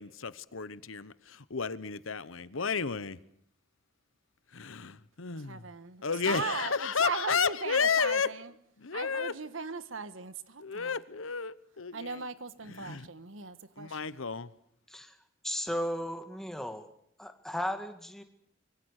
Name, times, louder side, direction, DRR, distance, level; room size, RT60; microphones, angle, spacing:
voice 1, 0.0-3.2 4.5-5.7 6.0-8.3 8.8-9.3 10.6-12.3 12.6-13.1 13.8-14.5, left 6 dB, 90° left, 1.1 m, -32 dB
voice 2, 5.4-8.5 8.9-11.0 11.9-14.2, right 4 dB, 80° right, 1.5 m, -38 dB
voice 3, 15.4-16.9 17.2-18.2, equal, ahead, 2.0 m, -35 dB
25.5 x 23.5 x 6.6 m
head